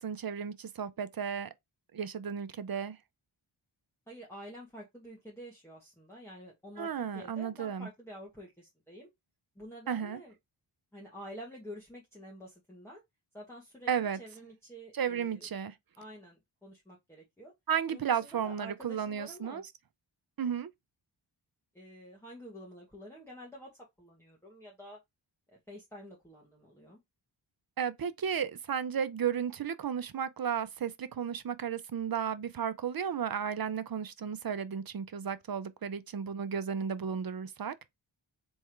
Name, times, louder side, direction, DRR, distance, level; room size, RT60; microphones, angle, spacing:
voice 1, 0.0-1.5 1.9-3.0 6.8-7.9 9.9-10.2 13.9-14.2 14.9-15.7 17.7-19.6 20.4-20.7 27.8-37.7, right 7 dB, 50° right, 0.6 m, -34 dB
voice 2, 4.1-6.9 7.1-9.1 9.6-10.3 10.9-13.0 13.3-13.9 14.2-15.5 16.0-17.5 17.9-19.6 21.7-23.7 24.0-25.0 25.7-27.0, equal, 5° left, 1.5 m, -48 dB
3.5 x 3.2 x 4.5 m
wide cardioid pair, 80°, 48 cm